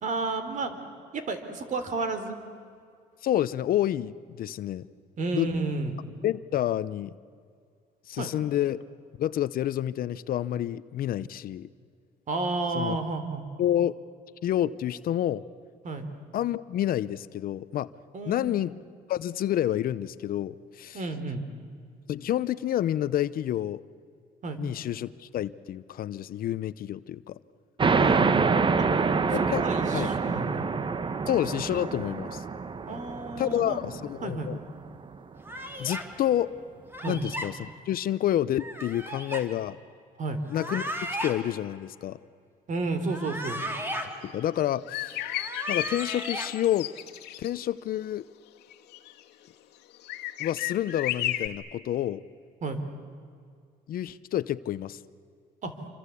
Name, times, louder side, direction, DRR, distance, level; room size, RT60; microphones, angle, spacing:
voice 1, 0.0-2.4 5.2-6.0 8.2-8.3 12.3-13.5 15.8-16.1 18.1-18.6 20.9-21.5 24.4-24.6 28.0-29.0 29.6-30.7 32.9-33.9 34.2-34.5 37.0-37.2 40.2-40.4 42.7-43.6 52.6-52.8 55.6-55.7, right 3 dB, 50° right, 9 dB, 3.5 m, -32 dB
voice 2, 3.2-4.8 5.3-5.5 6.2-7.2 8.1-8.8 9.2-11.7 12.7-13.0 13.6-13.9 14.4-15.4 16.3-17.9 18.3-18.7 19.1-21.0 22.1-23.8 24.6-27.4 29.3-29.6 29.9-30.1 31.3-32.4 33.4-34.6 35.8-36.5 37.1-37.6 37.9-39.8 40.5-40.9 41.2-42.2 44.2-45.2 45.7-46.9 47.4-48.3 50.4-52.2 53.9-55.0, left 12 dB, 60° left, 16 dB, 0.8 m, -28 dB
sound 1, 27.8-35.0, right 4 dB, 30° right, 1.1 m, -26 dB
sound 2, 35.4-36.1 36.9-37.5 38.6-39.4 40.5-41.3 43.0-44.1 45.2-46.5, equal, 15° right, 3.0 m, -35 dB
sound 3, 44.3-44.4 44.9-47.5 48.7-49.2 50.0-51.5, left 15 dB, 85° left, 1.7 m, -33 dB
27.5 x 25.0 x 8.4 m, 2.2 s
cardioid pair, 110°, 17 cm